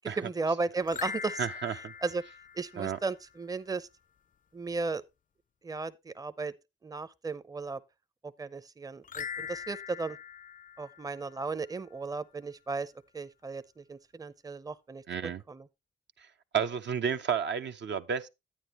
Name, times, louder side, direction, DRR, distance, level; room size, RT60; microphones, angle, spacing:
voice 1, 0.0-1.5 2.0-2.2 2.6-3.9 4.5-5.0 5.6-6.5 6.8-7.8 8.2-10.2 10.8-15.7, right 4 dB, 15° right, 0.6 m, -35 dB
sound 1, 0.8-3.3 9.0-11.7, left 6 dB, 40° left, 0.5 m, -42 dB
voice 2, 1.4-1.9 2.8-3.0 15.1-15.4 16.2-16.3 16.5-18.3, right 7 dB, 60° right, 0.6 m, -31 dB
10.0 x 9.1 x 3.0 m
supercardioid pair, 50°, 21 cm